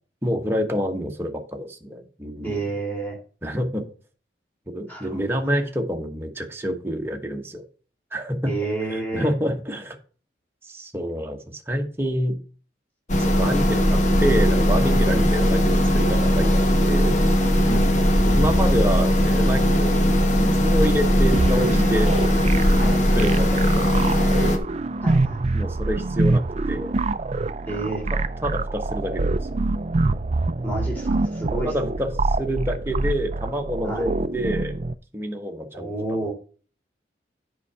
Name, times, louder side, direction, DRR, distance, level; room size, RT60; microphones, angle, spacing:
voice 1, 0.2-2.7 3.4-3.9 4.7-7.6 8.1-8.5 8.9-10.0 10.6-12.4 13.2-17.2 18.2-19.9 20.3-22.1 23.1-24.6 25.5-27.0 28.4-29.4 31.6-32.1 32.4-34.8 35.1-35.9, equal, 15° right, 2 dB, 1.2 m, -27 dB
voice 2, 2.4-3.2 4.9-5.2 8.5-9.3 15.1-15.3 17.7-18.3 22.8-23.0 25.0-25.4 27.7-28.0 30.6-31.9 33.8-34.1 35.7-36.3, right 2 dB, 10° left, -1 dB, 3.3 m, -30 dB
sound 1, 13.1-24.6, equal, 40° left, 1.1 m, -19 dB
sound 2, 21.3-34.9, right 2 dB, 35° right, 0.4 m, -26 dB
8.4 x 5.5 x 4.9 m, 0.39 s
head